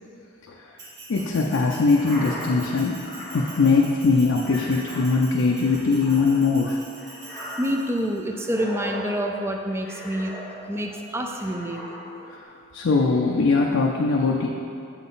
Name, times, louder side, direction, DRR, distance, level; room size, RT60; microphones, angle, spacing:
Bell, 0.8-8.2, right 2 dB, 55° right, 1.0 m, -44 dB
voice 1, 1.1-3.0 3.3-6.8 12.3-12.4 12.7-14.5, left 4 dB, 65° left, 0 dB, 0.4 m, -21 dB
sound 1, 1.9-11.0 11.4-12.4, left 1 dB, 10° left, 1.0 m, -39 dB
voice 2, 7.6-10.3 10.7-12.3, equal, 10° right, 3 dB, 0.3 m, -28 dB
8.1 x 3.9 x 3.9 m, 2.6 s
head